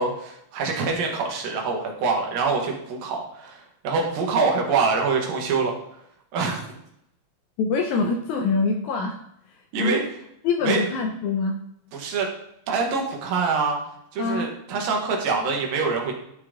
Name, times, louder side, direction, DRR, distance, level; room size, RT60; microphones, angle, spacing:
voice 1, 0.0-6.0 6.3-6.7 9.7-10.0 10.6-10.8 11.9-12.3 12.7-13.8 14.1-16.2, right 4 dB, 80° right, 0 dB, 3.2 m, -25 dB
voice 2, 7.6-9.2 9.8-10.0 10.4-11.6 14.2-14.5, left 4 dB, 80° left, 4 dB, 1.7 m, -24 dB
11.0 x 5.1 x 3.7 m, 0.77 s
omnidirectional pair, 4.0 m